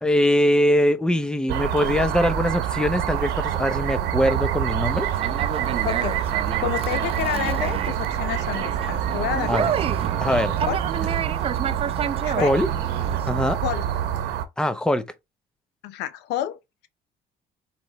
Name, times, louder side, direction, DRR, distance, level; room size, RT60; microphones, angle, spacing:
voice 1, 0.0-5.1 9.5-9.7 10.2-10.6 12.4-12.7 13.3-13.6 14.6-15.1, left 1 dB, 5° left, 0.7 m, -22 dB
sound 1, 1.5-14.4, right 10 dB, 85° right, 0.9 m, -26 dB
Conversation, 4.9-13.3, right 8 dB, 35° right, 0.4 m, -31 dB
voice 2, 5.8-6.3 6.6-9.8 10.6-10.8 12.2-12.6 13.6-13.8 15.8-16.9, left 12 dB, 80° left, 0.7 m, -29 dB
4.3 x 3.1 x 3.9 m
cardioid pair, 110°, 17 cm